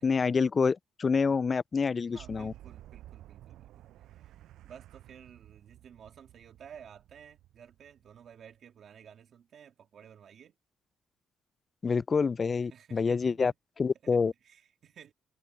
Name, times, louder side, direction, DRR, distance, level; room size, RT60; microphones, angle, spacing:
voice 1, 0.0-2.5 11.8-13.5 13.8-14.3, left 5 dB, 35° left, 0.3 m, -27 dB
voice 2, 2.1-10.5 12.7-13.6 14.0-15.1, right 8 dB, 60° right, 2.6 m, -54 dB
Boom, 2.1-8.7, right 14 dB, 85° right, 6.2 m, -53 dB
cardioid pair, 90°, 0 cm